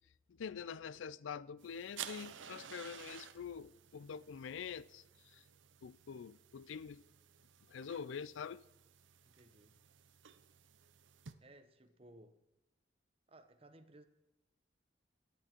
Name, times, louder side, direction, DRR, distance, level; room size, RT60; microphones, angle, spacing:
voice 1, 0.3-5.4 5.8-7.0 7.7-8.6, left 7 dB, 90° left, 0.4 m, -46 dB
sound 1, 1.6-11.3, right 9 dB, 80° right, 0.7 m, -54 dB
voice 2, 9.2-9.8 11.4-12.4 13.3-14.0, right 1 dB, 30° right, 1.0 m, -60 dB
17.0 x 10.5 x 4.5 m
head